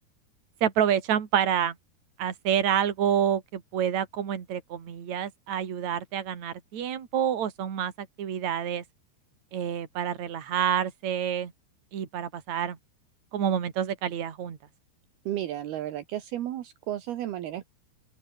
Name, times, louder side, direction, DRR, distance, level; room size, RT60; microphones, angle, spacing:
voice 1, 0.6-1.8 2.2-8.8 9.5-11.5 11.9-12.8 13.3-14.6, right 9 dB, 45° right, 3.6 m, -28 dB
voice 2, 15.3-17.7, right 12 dB, 70° right, 3.3 m, -33 dB
open air
omnidirectional pair, 4.8 m